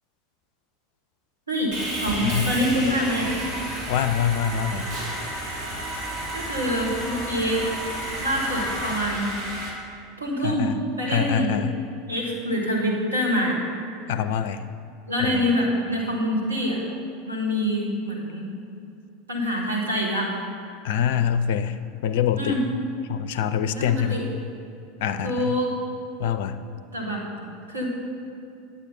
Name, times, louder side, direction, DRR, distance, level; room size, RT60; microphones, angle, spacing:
Sawing, 1.7-9.7, right 1 dB, 45° right, 2.6 m, -31 dB
voice 1, 2.0-3.3 6.3-7.7 8.2-9.3 10.2-11.5 12.1-13.6 15.1-16.9 17.3-18.5 19.3-20.4 22.3-22.6 23.7-24.3 25.2-25.7 26.9-27.2 27.7-27.9, equal, 80° right, -3 dB, 1.9 m, -25 dB
voice 2, 3.9-4.9 10.4-10.8 11.1-11.7 14.1-14.6 15.2-15.6 20.8-22.6 23.1-24.2 25.0-25.6 26.2-26.5, left 8 dB, 60° left, 11 dB, 0.4 m, -25 dB
9.7 x 8.7 x 4.3 m, 2.6 s
figure-of-eight pair, 80°, 0 cm